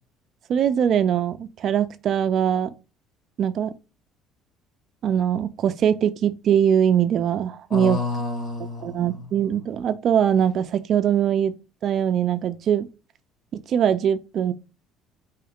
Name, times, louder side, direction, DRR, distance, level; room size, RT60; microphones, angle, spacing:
voice 1, 0.5-2.7 3.4-3.7 5.0-8.0 8.8-11.5 11.8-12.9 13.5-14.5, right 9 dB, 45° right, 0.3 m, -22 dB
voice 2, 7.7-9.5, left 3 dB, 35° left, 1.8 m, -30 dB
4.7 x 3.0 x 3.4 m
cardioid pair, 150°, 0 cm